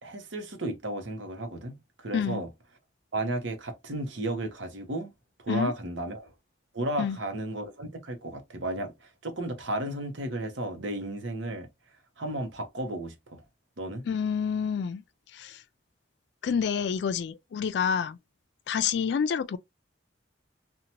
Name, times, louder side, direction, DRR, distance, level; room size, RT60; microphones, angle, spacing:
voice 1, 0.0-1.8 2.0-2.5 3.1-5.1 5.4-6.3 6.7-11.7 12.2-13.4 13.8-14.0, right 1 dB, 80° right, 0.8 m, -33 dB
voice 2, 14.0-15.0 15.3-15.6 16.4-18.2 18.7-19.6, left 7 dB, 65° left, 0.3 m, -28 dB
2.8 x 2.2 x 2.8 m
head